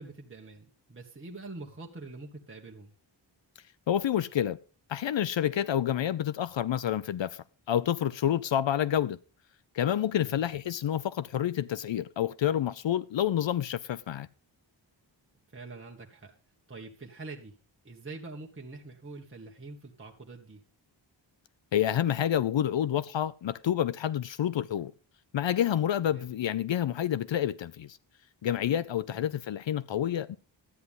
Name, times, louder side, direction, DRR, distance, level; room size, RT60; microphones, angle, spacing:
voice 1, 0.0-2.9 10.2-10.4 15.5-16.3 16.7-17.5 17.8-20.6 26.1-26.3 29.1-29.3, right 3 dB, 25° right, 1.6 m, -45 dB
voice 2, 3.9-4.6 4.9-9.2 9.7-14.3 21.7-24.9 25.3-28.0 28.4-30.4, left 10 dB, 70° left, 0.6 m, -28 dB
13.0 x 9.5 x 3.6 m
wide cardioid pair, 125°, 46 cm